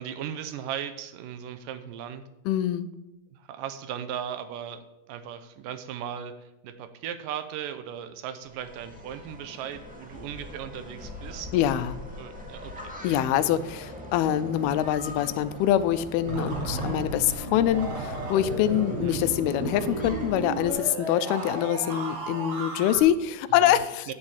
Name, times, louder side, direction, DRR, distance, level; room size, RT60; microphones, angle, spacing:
voice 1, 0.0-2.2 3.3-4.8 5.1-6.3 6.6-11.6 12.2-12.9 17.3-17.4 19.0-19.2 23.6-24.1, right 9 dB, 75° right, 10 dB, 2.3 m, -37 dB
voice 2, 2.5-2.9 11.5-12.0 13.0-24.1, left 11 dB, 85° left, 14 dB, 2.6 m, -25 dB
sound 1, 8.4-20.7, left 1 dB, 5° right, 1.0 m, -42 dB
sound 2, 16.3-23.0, right 2 dB, 40° right, 2.6 m, -34 dB
9.8 x 7.4 x 8.8 m, 0.92 s
omnidirectional pair, 4.4 m